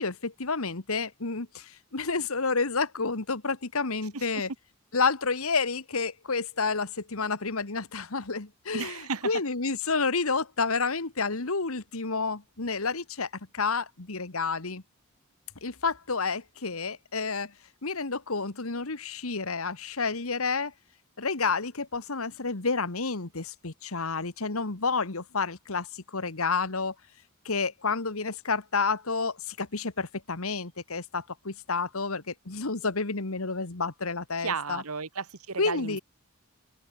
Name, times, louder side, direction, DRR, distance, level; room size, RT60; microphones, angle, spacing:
voice 1, 0.0-4.5 4.9-13.3 13.5-14.8 15.6-17.5 17.8-20.7 21.2-26.9 27.5-34.8 35.6-36.0, left 4 dB, 75° left, 1.7 m, -30 dB
voice 2, 8.7-9.3 34.4-36.0, right 5 dB, 85° right, 1.5 m, -33 dB
head